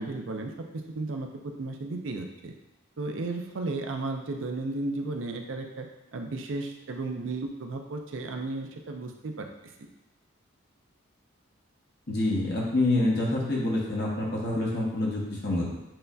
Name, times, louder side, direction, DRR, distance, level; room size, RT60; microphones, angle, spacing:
voice 1, 0.0-2.5 3.0-5.9 6.1-9.5 9.8-9.9, right 2 dB, 70° right, 3 dB, 0.5 m, -34 dB
voice 2, 12.1-15.8, left 2 dB, 50° left, -4 dB, 1.1 m, -27 dB
7.5 x 2.6 x 2.2 m, 0.94 s
head